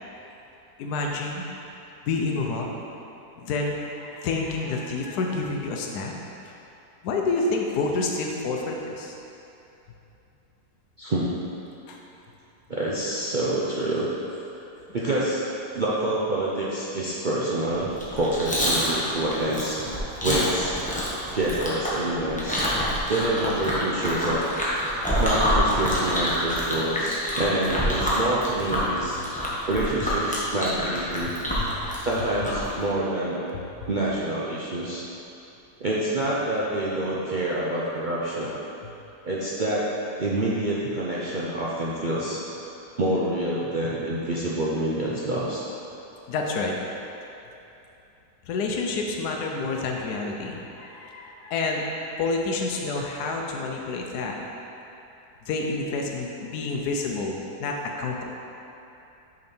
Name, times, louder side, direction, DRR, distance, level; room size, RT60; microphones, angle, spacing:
voice 1, 0.8-1.4 2.1-2.8 3.4-6.2 7.0-9.1 11.9-12.0 26.9-27.0 31.6-31.7 33.5-33.6 46.3-46.7 48.5-54.4 55.5-58.2, left 3 dB, 75° left, 0 dB, 1.2 m, -28 dB
voice 2, 12.7-14.1 14.9-15.4 15.7-19.8 20.2-20.7 21.3-22.7 23.1-24.4 25.2-31.3 32.0-33.4 33.9-35.0 35.8-38.5 39.3-39.8 40.2-42.4 43.0-45.6, right 1 dB, 60° right, -7 dB, 0.5 m, -27 dB
Chewing mastication, 17.9-32.7, equal, 5° left, 1.0 m, -27 dB
6.7 x 5.4 x 4.3 m, 2.9 s
omnidirectional pair, 1.7 m